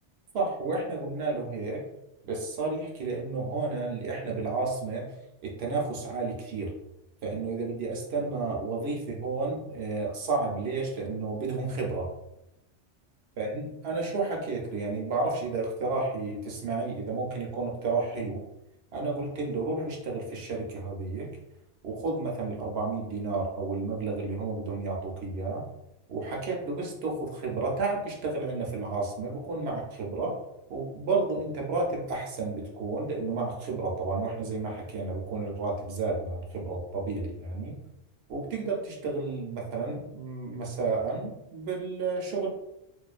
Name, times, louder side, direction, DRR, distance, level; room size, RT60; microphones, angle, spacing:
voice 1, 0.3-1.8 2.2-5.1 5.4-6.7 7.2-12.1 13.4-18.4 18.9-21.3 21.8-25.6 26.1-30.4 30.7-37.8 38.3-42.5, right 3 dB, 65° right, -1 dB, 0.8 m, -31 dB
2.4 x 2.2 x 2.3 m, 0.87 s
omnidirectional pair, 1.2 m